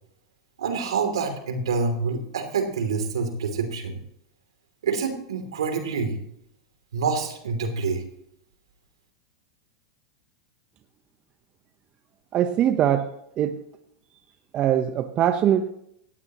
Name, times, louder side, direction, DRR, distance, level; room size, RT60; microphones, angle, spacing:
voice 1, 0.6-4.0 4.8-6.1 6.9-8.0, right 5 dB, 80° right, 6 dB, 3.1 m, -27 dB
voice 2, 12.3-13.1 13.4-13.6 14.5-15.7, right 10 dB, 35° right, 9 dB, 1.0 m, -22 dB
18.5 x 14.5 x 3.1 m, 0.74 s
hypercardioid pair, 105°, 3 cm